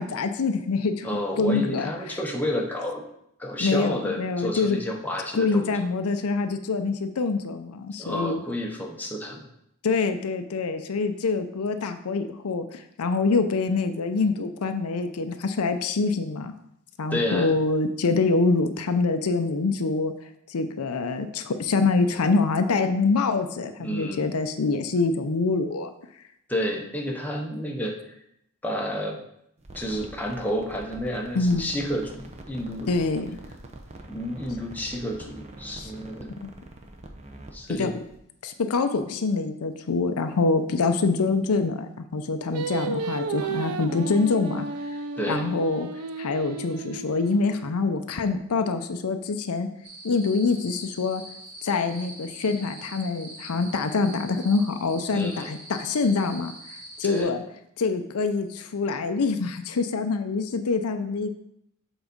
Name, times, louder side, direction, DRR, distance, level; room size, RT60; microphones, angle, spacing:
voice 1, 0.0-1.1 1.4-2.2 3.6-4.8 5.3-8.4 9.8-16.5 17.0-20.1 20.5-25.9 31.3-31.7 32.9-33.3 35.8-35.9 36.4-36.5 37.7-37.9 38.4-44.7 45.3-45.9 46.2-49.7 50.0-51.2 51.6-56.5 57.0-57.4 57.8-61.3, left 4 dB, 75° left, 7 dB, 0.5 m, -25 dB
voice 2, 1.0-3.0 3.4-5.7 8.0-9.5 17.1-17.6 23.8-24.3 26.5-28.0 28.6-29.2 29.7-32.9 34.1-36.3 37.5-37.9 45.2-45.5 55.1-55.5 57.0-57.3, equal, 10° left, 0 dB, 0.9 m, -30 dB
sound 1, 29.6-38.2, right 1 dB, 30° right, 0.7 m, -44 dB
Singing, 42.5-47.8, right 4 dB, 85° right, 0.5 m, -33 dB
sound 2, 49.8-57.2, right 1 dB, 70° right, 2.0 m, -44 dB
7.1 x 4.0 x 5.2 m, 0.76 s
head